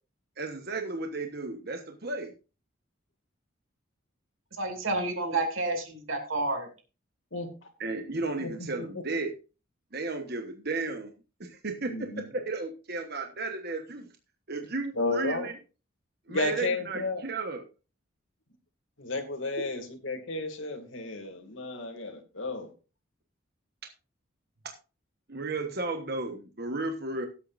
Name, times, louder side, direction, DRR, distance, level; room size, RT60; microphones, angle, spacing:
voice 1, 0.4-2.3 7.8-9.3 9.9-11.1 11.4-12.1 12.3-14.1 14.5-15.5 16.3-17.6 24.6-24.7 25.3-27.3, right 3 dB, 50° right, 4 dB, 1.2 m, -34 dB
voice 2, 4.6-6.7, right 2 dB, 85° right, 3 dB, 2.7 m, -30 dB
voice 3, 7.3-7.7 8.4-9.0 11.9-12.2 15.0-15.5 16.3-17.2 19.0-22.7, left 3 dB, 75° left, 4 dB, 2.4 m, -33 dB
18.0 x 8.3 x 2.6 m, 0.33 s
head